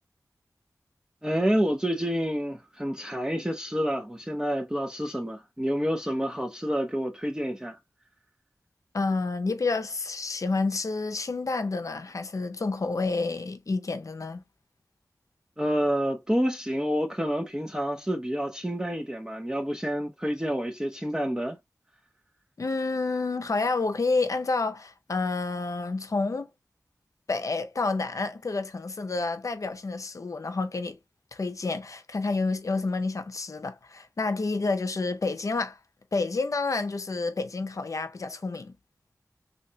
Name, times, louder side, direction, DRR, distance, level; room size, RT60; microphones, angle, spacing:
voice 1, 1.2-7.8 15.6-21.6, equal, 10° right, 0.5 m, -28 dB
voice 2, 8.9-14.4 22.6-26.5 27.3-31.0 31.3-35.8 36.1-38.8, left 3 dB, 60° left, 0.6 m, -29 dB
3.1 x 2.7 x 2.6 m
wide cardioid pair, 55°, 6 cm